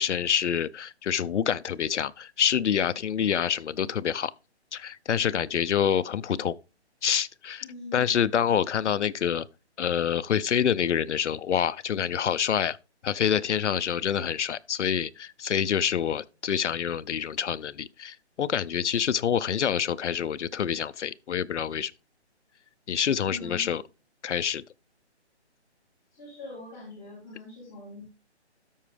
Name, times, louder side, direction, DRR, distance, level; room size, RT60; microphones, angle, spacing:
voice 1, 0.0-4.3 4.7-6.5 7.0-7.7 7.9-9.5 9.8-12.8 13.0-21.9 22.9-23.8 24.2-24.6, left 8 dB, 90° left, 0.6 m, -27 dB
voice 2, 7.6-8.2 23.3-23.8 26.1-28.1, left 2 dB, 15° left, 3.0 m, -43 dB
13.0 x 4.7 x 3.4 m
hypercardioid pair, 180°, 34 cm